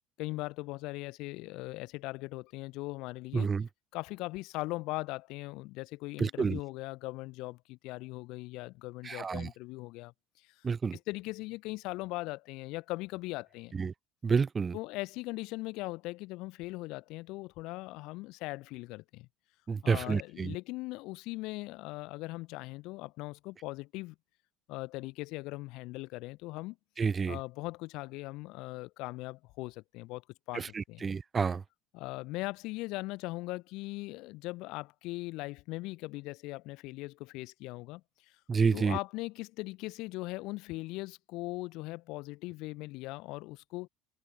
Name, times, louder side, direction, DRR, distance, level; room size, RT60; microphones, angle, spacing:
voice 1, 0.2-3.5 3.9-10.1 10.9-13.8 14.7-19.3 19.8-24.1 24.7-26.8 27.3-30.2 30.5-31.0 31.9-38.0 38.7-43.9, left 21 dB, 55° left, 0.9 m, -39 dB
voice 2, 3.3-3.7 6.2-6.6 9.0-9.5 10.6-11.0 13.7-13.9 14.2-14.8 19.7-20.6 27.0-27.4 30.5-31.6 38.5-39.0, right 5 dB, 25° right, 0.4 m, -29 dB
figure-of-eight pair, 65°, 0 cm